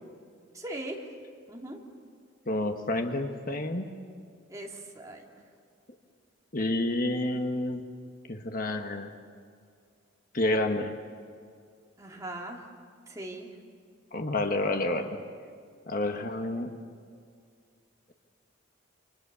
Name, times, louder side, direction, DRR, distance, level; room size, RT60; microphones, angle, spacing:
voice 1, 0.5-1.1 1.5-1.8 4.5-5.3 12.0-12.6 13.1-13.5, right 1 dB, 15° right, -1 dB, 3.0 m, -39 dB
voice 2, 2.5-3.9 6.5-7.8 8.3-9.1 10.3-10.9 14.1-15.2 15.9-16.7, left 1 dB, 45° left, 5 dB, 1.5 m, -29 dB
28.5 x 26.5 x 7.0 m, 2.2 s
head